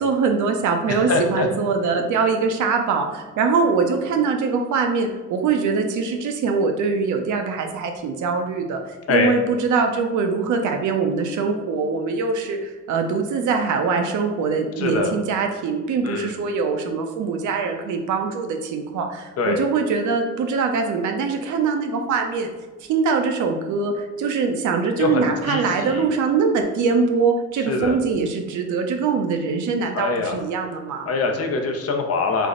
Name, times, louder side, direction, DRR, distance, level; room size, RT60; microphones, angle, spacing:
voice 1, 0.0-8.8 9.1-22.5 22.9-31.1, right 5 dB, 75° right, 4 dB, 0.6 m, -23 dB
voice 2, 0.9-1.5 9.1-9.3 14.8-15.2 16.0-16.3 19.4-19.6 25.0-26.1 27.7-28.0 29.9-30.4 31.1-32.5, left 4 dB, 50° left, 3 dB, 0.6 m, -23 dB
3.4 x 2.1 x 3.7 m, 1.2 s
cardioid pair, 90°, 30 cm